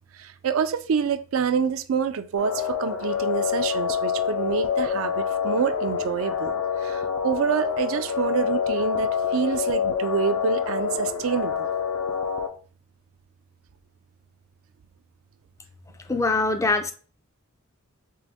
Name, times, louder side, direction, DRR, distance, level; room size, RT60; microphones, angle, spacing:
voice 1, 0.1-11.7, right 6 dB, 65° right, 0.4 m, -27 dB
sound 1, 2.4-12.5, left 7 dB, 75° left, 0.6 m, -27 dB
voice 2, 16.1-16.9, left 3 dB, 15° left, 0.3 m, -23 dB
3.7 x 3.0 x 3.5 m
head